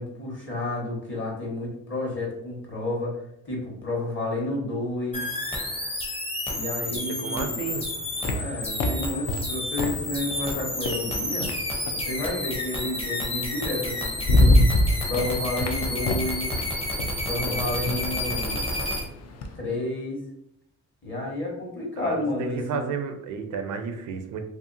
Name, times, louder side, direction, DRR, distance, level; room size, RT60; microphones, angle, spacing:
voice 1, 0.0-3.1 3.4-5.3 6.5-7.6 8.3-11.5 11.9-14.6 15.0-16.5 17.2-18.7 19.5-20.2 21.0-22.8, left 2 dB, 40° left, -2 dB, 1.2 m, -31 dB
sound 1, 5.1-19.0, left 1 dB, 20° left, 0.7 m, -30 dB
voice 2, 6.8-7.9 22.0-24.5, right 6 dB, 80° right, 7 dB, 0.5 m, -32 dB
sound 2, 7.6-12.1 13.4-13.5 13.9-19.6, left 1 dB, 55° left, 0.5 m, -26 dB
2.7 x 2.4 x 2.6 m, 0.77 s
cardioid pair, 90°, 30 cm